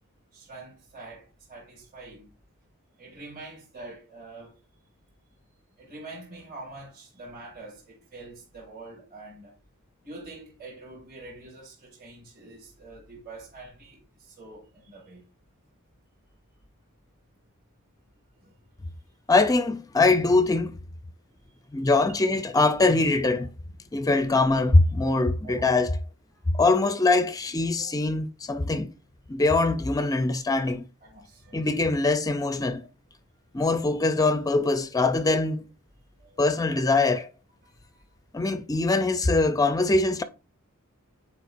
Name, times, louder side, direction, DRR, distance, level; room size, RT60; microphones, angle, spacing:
voice 1, 0.3-2.3 3.0-4.6 5.8-9.5 10.0-15.2 18.4-18.5 21.9-22.1 23.8-24.0 25.4-25.7 26.3-26.6 27.8-28.2 28.5-28.8 31.0-31.8 36.2-36.6 39.3-39.4, right 2 dB, 45° right, 2.2 m, -45 dB
voice 2, 19.3-20.8 21.7-23.5 23.9-25.9 26.5-28.9 29.3-30.8 31.5-32.8 33.5-35.7 36.4-37.3 38.3-40.2, left 3 dB, 15° left, 0.4 m, -22 dB
9.2 x 4.8 x 2.5 m
head